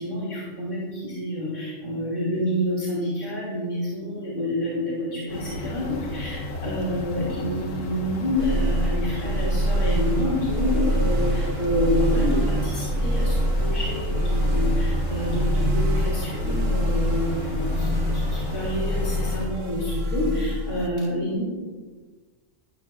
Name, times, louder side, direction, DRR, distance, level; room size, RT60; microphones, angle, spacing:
voice 1, 0.0-21.4, left 1 dB, 40° left, -6 dB, 3.4 m, -28 dB
sound 1, 5.3-19.5, left 1 dB, 85° left, 1.3 m, -34 dB
sound 2, 8.4-20.9, equal, 50° right, 1.4 m, -25 dB
17.5 x 13.0 x 2.4 m, 1.4 s
omnidirectional pair, 1.3 m